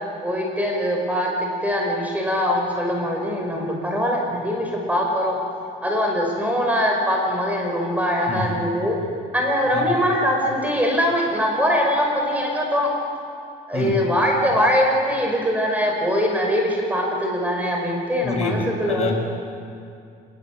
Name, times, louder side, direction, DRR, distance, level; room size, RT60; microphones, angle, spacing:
voice 1, 0.2-5.4 5.8-9.0 9.3-12.9 13.7-19.1, equal, 10° right, 0 dB, 5.6 m, -22 dB
voice 2, 9.7-10.0 13.7-14.0 18.2-19.1, left 3 dB, 40° left, 1 dB, 6.2 m, -26 dB
26.5 x 21.0 x 7.8 m, 2.4 s
cardioid pair, 110°, 17 cm